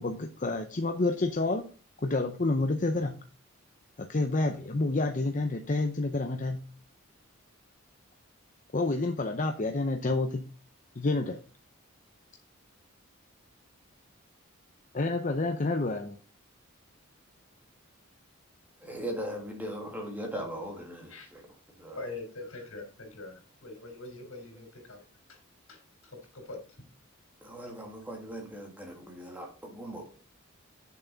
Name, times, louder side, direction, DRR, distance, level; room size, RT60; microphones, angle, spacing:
voice 1, 0.0-1.6 2.0-3.1 4.0-6.6 8.7-10.4 11.0-11.4 14.9-16.2, left 2 dB, 40° left, 0.7 m, -29 dB
voice 2, 18.8-21.4 21.7-22.0 27.4-30.1, equal, 10° right, 1.8 m, -39 dB
voice 3, 21.9-25.0 25.3-25.4 25.7-26.9, left 2 dB, 85° left, 3.6 m, -44 dB
8.3 x 6.9 x 4.0 m
head